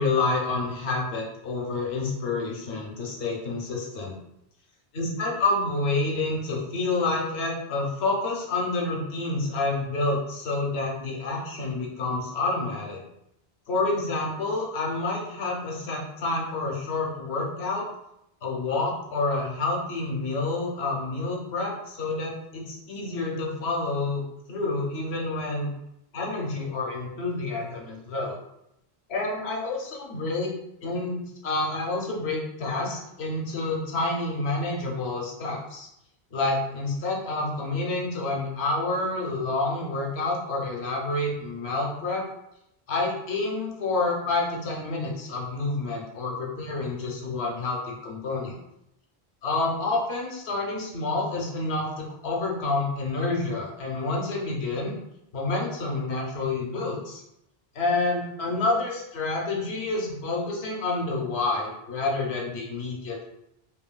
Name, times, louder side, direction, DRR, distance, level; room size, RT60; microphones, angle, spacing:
voice 1, 0.0-4.1 4.9-13.0 13.7-17.9 18.4-24.2 24.5-25.7 26.1-28.4 29.1-30.5 30.8-35.9 36.3-42.3 42.9-48.5 49.4-54.9 55.3-57.2 57.7-63.2, left 3 dB, 85° left, -2 dB, 1.0 m, -28 dB
3.0 x 2.6 x 2.2 m, 0.82 s
omnidirectional pair, 1.1 m